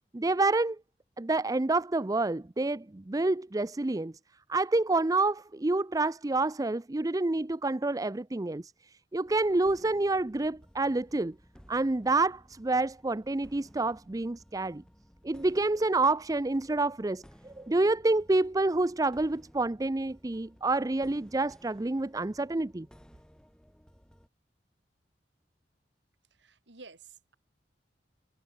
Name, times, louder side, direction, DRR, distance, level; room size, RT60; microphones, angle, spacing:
voice 1, 0.1-0.8 1.2-4.1 4.5-11.3 11.7-14.8 15.2-22.9, right 2 dB, 20° right, 0.5 m, -28 dB
sound 1, 9.2-24.3, equal, 5° left, 3.8 m, -58 dB
voice 2, 26.3-27.4, right 4 dB, 80° right, 3.3 m, -52 dB
head